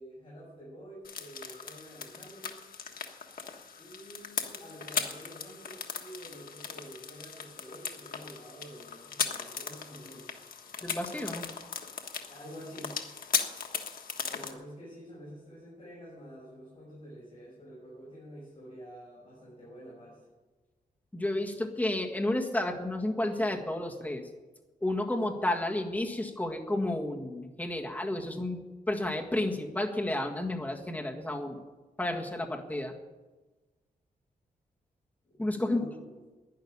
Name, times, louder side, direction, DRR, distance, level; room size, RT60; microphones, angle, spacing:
voice 1, 0.0-2.6 3.7-10.3 12.3-12.9 14.3-20.2 35.2-36.2, equal, 35° left, -6 dB, 6.2 m, -48 dB
sound 1, 1.0-14.5, left 6 dB, 70° left, 1.4 m, -38 dB
voice 2, 10.8-11.5 21.1-24.2 24.8-28.6 28.9-31.6 32.0-32.9 35.4-35.8, left 1 dB, 10° left, 1 dB, 1.7 m, -31 dB
12.0 x 10.5 x 9.9 m, 1.2 s
wide cardioid pair, 155°, 15 cm